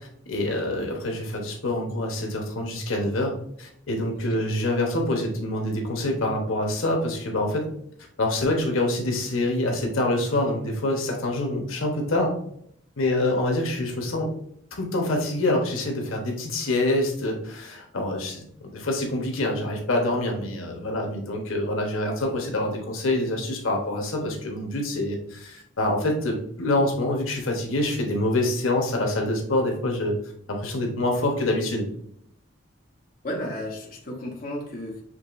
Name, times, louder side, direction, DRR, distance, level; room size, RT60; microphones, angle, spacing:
voice 1, 0.3-7.7 8.2-12.3 13.0-14.3 14.8-18.4 18.7-30.2 30.5-31.9, left 1 dB, 90° left, 1 dB, 1.1 m, -26 dB
voice 2, 33.2-35.0, left 1 dB, 45° left, -2 dB, 1.0 m, -33 dB
6.4 x 3.1 x 2.5 m, 0.68 s
head